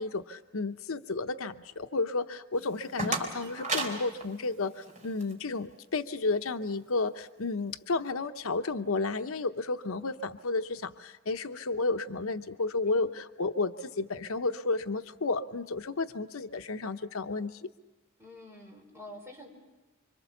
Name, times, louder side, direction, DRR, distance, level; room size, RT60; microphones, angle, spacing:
voice 1, 0.0-17.6, left 3 dB, 75° left, 8 dB, 0.8 m, -32 dB
sound 1, 2.6-5.3, right 2 dB, 35° right, 3.6 m, -35 dB
voice 2, 18.2-19.5, left 1 dB, 15° right, 0 dB, 4.9 m, -47 dB
26.5 x 25.0 x 7.1 m, 1.1 s
head